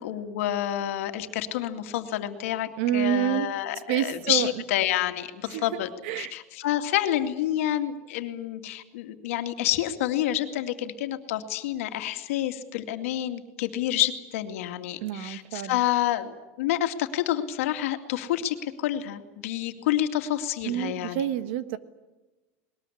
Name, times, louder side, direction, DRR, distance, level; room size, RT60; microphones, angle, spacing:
voice 1, 0.0-5.9 6.2-21.2, left 12 dB, 85° left, 7 dB, 2.3 m, -28 dB
voice 2, 2.8-3.5 3.9-4.5 5.5-6.3 15.0-15.8 20.6-21.8, right 11 dB, 60° right, 13 dB, 1.5 m, -28 dB
20.5 x 20.5 x 9.9 m, 1.1 s
supercardioid pair, 175°, 7 cm